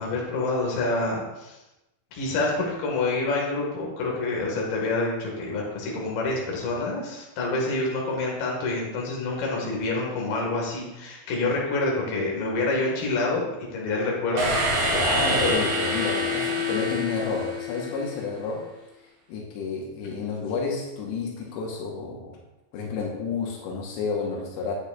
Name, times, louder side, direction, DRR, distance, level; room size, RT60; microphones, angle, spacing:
voice 1, 0.0-1.6 2.1-14.5 15.4-15.6, left 3 dB, 65° left, -2 dB, 3.4 m, -27 dB
sound 1, 14.4-18.2, equal, 60° right, 3.5 m, -26 dB
voice 2, 14.9-18.6 19.3-22.4 22.7-24.7, left 4 dB, 90° left, -1 dB, 3.3 m, -30 dB
9.5 x 8.3 x 2.4 m, 0.98 s
omnidirectional pair, 5.0 m